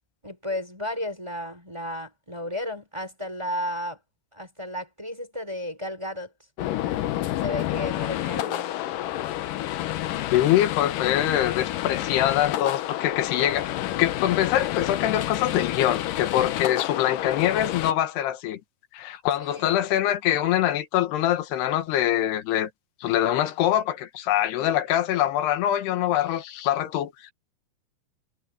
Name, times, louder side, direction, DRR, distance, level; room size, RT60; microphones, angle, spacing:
voice 1, 0.2-4.0 4.3-6.3 7.4-8.7 19.5-19.9, left 1 dB, 5° right, 4.6 m, -33 dB
sound 1, 6.6-17.9, left 13 dB, 70° left, 2.3 m, -29 dB
voice 2, 10.3-18.6 18.9-22.7 23.0-27.3, left 12 dB, 85° left, 3.4 m, -24 dB
omnidirectional pair, 4.6 m